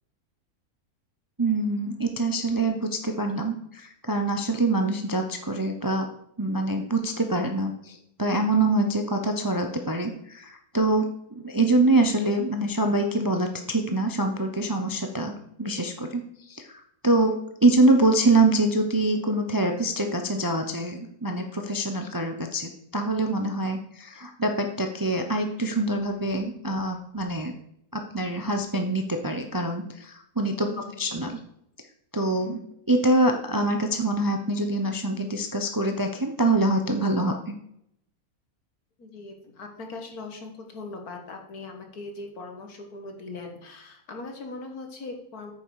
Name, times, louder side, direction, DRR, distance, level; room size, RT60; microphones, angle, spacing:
voice 1, 1.4-6.1 6.4-17.4 17.6-27.5 27.9-30.7 31.0-31.4 32.1-32.6 32.9-37.6, right 2 dB, 20° right, 4 dB, 0.5 m, -25 dB
voice 2, 30.7-31.0 39.0-45.5, left 3 dB, 80° left, 3 dB, 2.0 m, -40 dB
9.0 x 6.8 x 4.8 m, 0.73 s
omnidirectional pair, 1.6 m